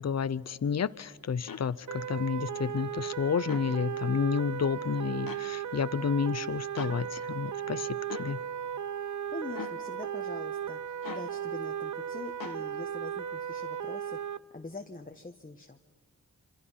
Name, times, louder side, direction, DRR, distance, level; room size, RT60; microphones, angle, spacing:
voice 1, 0.0-7.9 8.2-8.4, left 6 dB, 50° left, 17 dB, 0.7 m, -30 dB
sound 1, 1.5-1.7 3.4-3.7 5.3-5.5 6.8-7.0 8.1-8.3 9.5-9.8 11.0-11.3 12.4-12.6, left 6 dB, 80° left, 1.2 m, -41 dB
sound 2, 1.9-14.4, right 9 dB, 60° right, 0.6 m, -36 dB
voice 2, 9.3-10.8 11.1-14.2 14.5-15.8, left 2 dB, 25° left, 3 dB, 1.3 m, -43 dB
26.5 x 26.0 x 5.7 m, 1.5 s
cardioid pair, 60°, 34 cm